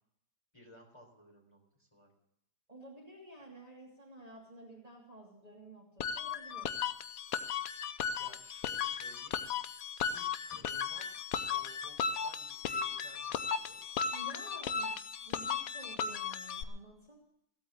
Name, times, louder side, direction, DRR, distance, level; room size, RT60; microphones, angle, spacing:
voice 1, 0.5-2.1 7.7-7.9 8.2-9.4 10.1-11.1 11.5-13.8, equal, 15° left, -1 dB, 3.9 m, -57 dB
voice 2, 2.7-6.7 14.1-14.9 15.2-17.2, right 1 dB, 20° right, -3 dB, 3.0 m, -52 dB
sound 1, 6.0-16.6, left 7 dB, 65° left, 1.1 m, -36 dB
16.5 x 8.6 x 7.3 m, 0.76 s
omnidirectional pair, 1.8 m